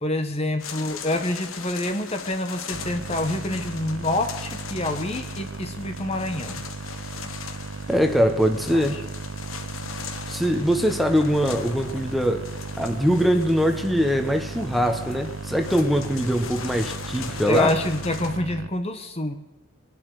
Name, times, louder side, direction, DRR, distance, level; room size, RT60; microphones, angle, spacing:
voice 1, 0.0-6.6 8.7-8.9 17.5-19.3, left 1 dB, 30° left, 6 dB, 1.2 m, -27 dB
sound 1, 0.6-18.4, left 6 dB, 90° left, 1.4 m, -39 dB
sound 2, 2.7-18.7, right 4 dB, 85° right, 0.7 m, -36 dB
voice 2, 7.9-9.0 10.3-12.5 12.8-17.7, equal, ahead, 5 dB, 1.3 m, -22 dB
23.0 x 11.5 x 4.9 m, 0.98 s
head